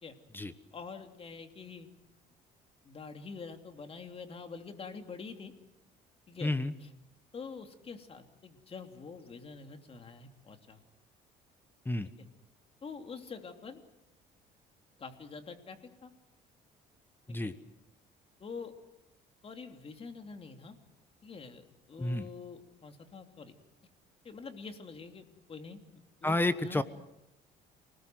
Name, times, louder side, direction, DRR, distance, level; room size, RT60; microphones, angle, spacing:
voice 1, 0.7-1.9 2.8-5.5 6.3-6.5 7.3-10.8 12.8-13.8 15.0-16.1 17.3-17.5 18.4-18.7 19.4-20.7 21.2-23.5 24.2-25.8 26.2-26.4 26.6-26.8, left 5 dB, 35° left, 6 dB, 3.0 m, -46 dB
voice 2, 6.4-6.7 11.8-12.1 17.3-17.5 22.0-22.3 26.2-26.8, left 2 dB, 10° left, 13 dB, 1.2 m, -30 dB
28.5 x 20.0 x 7.8 m, 0.86 s
cardioid pair, 110°, 17 cm